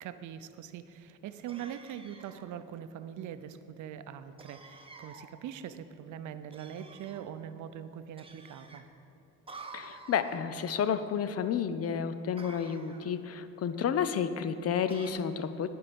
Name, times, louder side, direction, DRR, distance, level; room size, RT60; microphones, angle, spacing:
voice 1, 0.0-8.9, right 9 dB, 75° right, 11 dB, 0.6 m, -42 dB
sound 1, 1.5-2.5 4.4-5.3 6.5-7.3 8.2-8.8 9.5-10.4 12.4-13.2 14.9-15.1, right 3 dB, 20° right, 0.9 m, -50 dB
voice 2, 9.7-15.7, left 7 dB, 50° left, 11 dB, 0.6 m, -31 dB
10.0 x 4.7 x 8.0 m, 2.8 s
cardioid pair, 90°, 30 cm